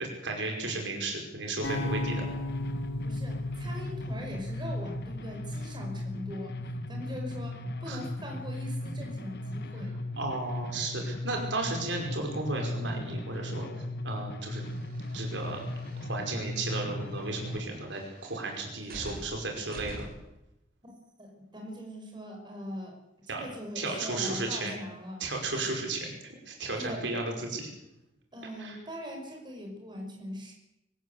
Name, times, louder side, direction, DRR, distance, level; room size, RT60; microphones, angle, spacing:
voice 1, 0.0-2.3 7.9-8.0 10.2-13.7 14.0-14.6 15.1-15.6 16.1-20.1 23.3-23.4 23.8-24.8 25.2-26.1 26.5-27.7 28.6-28.8, right 2 dB, 70° right, 2 dB, 5.4 m, -34 dB
sound 1, 1.6-5.8, left 1 dB, 90° left, 5.5 m, -36 dB
sound 2, 1.6-17.6, left 1 dB, 60° left, 1.4 m, -37 dB
voice 2, 3.0-10.0 20.8-20.9 21.2-23.0 23.3-25.3 26.8-27.0 28.3-30.5, equal, 25° right, 2 dB, 5.4 m, -41 dB
sound 3, 14.5-20.4, right 1 dB, 55° right, 5.2 m, -48 dB
24.0 x 14.5 x 8.2 m, 0.89 s
head